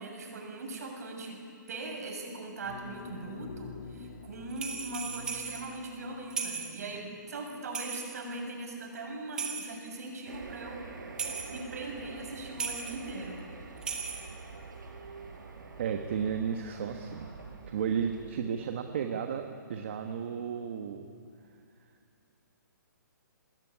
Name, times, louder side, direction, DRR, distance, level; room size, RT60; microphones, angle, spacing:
voice 1, 0.0-1.4 1.7-11.0 11.5-13.4, right 2 dB, 50° right, 2 dB, 7.1 m, -40 dB
sound 1, 2.6-7.2, left 5 dB, 40° left, 1.7 m, -48 dB
sound 2, 4.5-5.7 6.3-6.8 7.7-8.3 9.4-10.0 11.2-11.6 12.6-13.1 13.8-14.4, right 6 dB, 5° right, 1.2 m, -37 dB
sound 3, 10.2-18.3, right 4 dB, 70° right, 5.0 m, -46 dB
voice 2, 15.8-17.3 17.7-21.0, right 7 dB, 35° right, 5 dB, 1.4 m, -33 dB
24.5 x 20.5 x 10.0 m, 2.4 s
hypercardioid pair, 175°, 11 cm